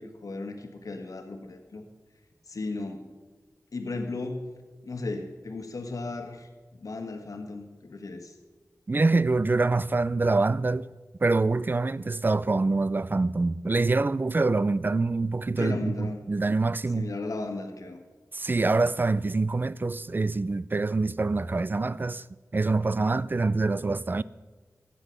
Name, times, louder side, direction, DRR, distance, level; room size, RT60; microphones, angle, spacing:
voice 1, 0.0-1.8 2.5-3.1 3.7-4.5 4.8-6.5 6.8-8.3 15.6-16.3 16.9-18.0, left 3 dB, 80° left, 1.6 m, -35 dB
voice 2, 8.9-10.9 11.2-17.1 18.3-22.2 22.5-24.2, right 3 dB, 35° right, 0.4 m, -25 dB
14.5 x 9.3 x 6.7 m
wide cardioid pair, 80°, 6 cm